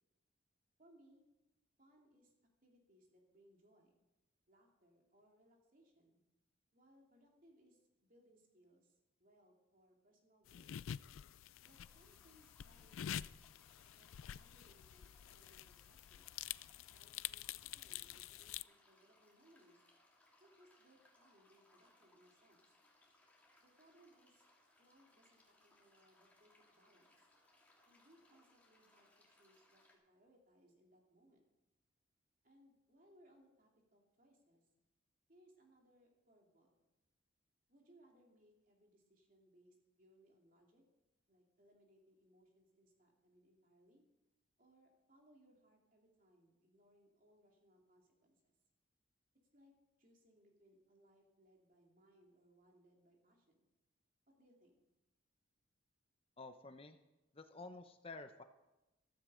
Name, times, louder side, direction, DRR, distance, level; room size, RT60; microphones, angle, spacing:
voice 1, 0.8-1.3 1.8-2.3 2.6-3.9 4.5-6.2 6.7-10.8 11.6-13.2 13.9-16.3 16.9-19.8 20.4-22.7 23.6-24.4 24.8-27.3 27.9-31.5 32.4-34.6 35.3-36.9 37.7-40.8 41.3-44.0 44.6-48.5 49.5-49.7 50.0-53.7 54.3-54.7, right 1 dB, 45° right, 0 dB, 3.0 m, -69 dB
sound 1, 10.5-18.6, left 10 dB, 85° left, 0.4 m, -48 dB
sound 2, 11.6-29.9, left 1 dB, 10° left, 2.6 m, -71 dB
voice 2, 56.4-57.0 57.3-58.4, left 3 dB, 30° left, 8 dB, 0.7 m, -51 dB
14.5 x 13.5 x 5.0 m, 0.98 s
head